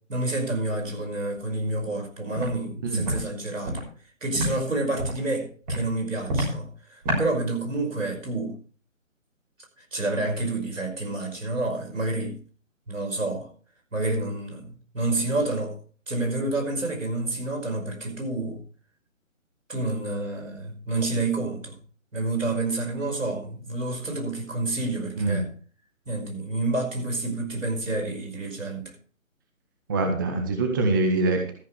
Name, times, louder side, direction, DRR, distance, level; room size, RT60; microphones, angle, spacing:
voice 1, 0.1-3.8 4.2-8.6 9.8-12.3 12.9-13.5 13.9-15.8 16.1-18.6 19.7-21.8 22.1-25.5 26.1-28.9, right 2 dB, 70° right, 5.6 m, -29 dB
Walk footsteps, 2.3-2.5 3.0-3.2 3.6-3.8 4.3-4.5 5.0-5.2 5.7-5.8 6.3-6.5 7.0-7.2, right 1 dB, 30° right, 6.3 m, -26 dB
voice 2, 29.9-31.6, right 2 dB, 15° right, 0.9 m, -24 dB
13.5 x 11.5 x 3.3 m
figure-of-eight pair, 150°, 40 cm